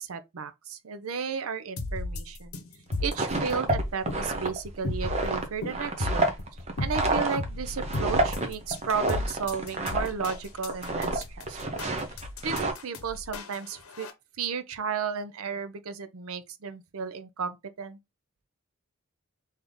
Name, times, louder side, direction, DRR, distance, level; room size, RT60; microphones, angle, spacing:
voice 1, 0.0-2.5 3.0-6.3 6.8-11.8 12.4-14.1 14.4-18.0, right 6 dB, 85° right, 0.6 m, -34 dB
sound 1, 1.8-14.1, left 2 dB, 85° left, 0.8 m, -34 dB
sound 2, 2.9-10.4 10.6-11.2 11.5-12.7, right 2 dB, 30° right, 0.7 m, -29 dB
3.5 x 2.8 x 3.7 m
head